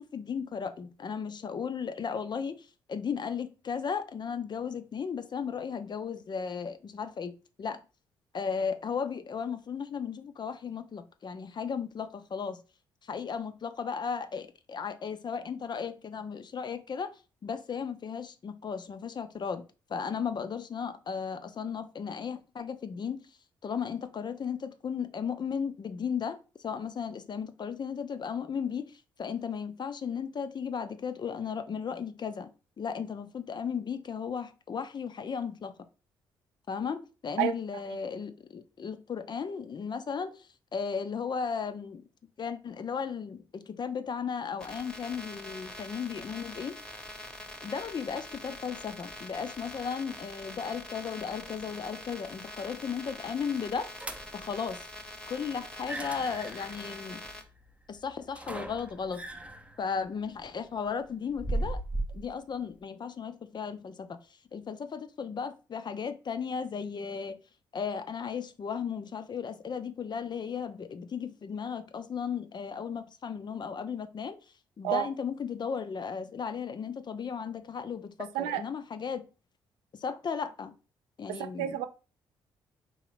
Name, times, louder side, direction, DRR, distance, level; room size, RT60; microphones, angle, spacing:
voice 1, 0.0-7.3 7.6-7.8 8.3-12.6 13.0-17.1 17.4-19.6 19.9-23.2 23.6-32.5 32.8-35.7 36.7-42.0 42.4-46.8 47.6-53.9 54.3-54.9 55.3-57.2 57.9-59.2 59.8-61.8 62.1-64.2 64.5-67.4 67.7-74.4 74.8-79.3 80.0-80.7 81.2-81.8, left 6 dB, 40° left, 0.5 m, -35 dB
sound 1, 44.6-57.4, left 1 dB, 5° left, 1.0 m, -44 dB
sound 2, 54.0-54.5 55.7-62.3, right 2 dB, 10° right, 0.7 m, -38 dB
voice 2, 81.3-81.9, right 12 dB, 75° right, 0.4 m, -29 dB
3.8 x 3.1 x 3.1 m
hypercardioid pair, 45°, 11 cm